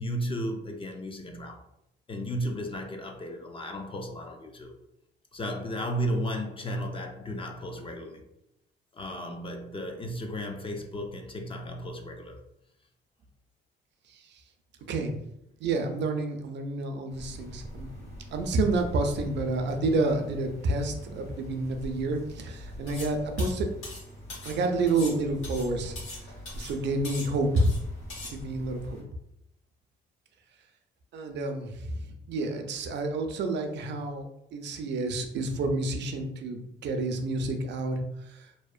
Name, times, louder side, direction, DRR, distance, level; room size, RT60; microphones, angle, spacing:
voice 1, 0.0-1.6 2.1-4.7 5.3-8.2 8.9-12.4, equal, 25° left, 3 dB, 0.4 m, -34 dB
voice 2, 15.6-17.9 18.3-23.7 24.4-26.0 26.5-27.7 28.2-29.0 31.1-32.0 32.3-34.3 34.5-38.0, right 2 dB, 60° right, 5 dB, 0.5 m, -29 dB
sound 1, 17.1-29.0, equal, 65° left, 1.5 m, -44 dB
sound 2, 22.9-23.1 23.4-24.6 24.9-26.2 26.5-26.8 27.0-27.8 28.1-28.3, left 2 dB, 80° left, 1.1 m, -41 dB
2.8 x 2.1 x 2.4 m, 0.82 s
cardioid pair, 90°, 20 cm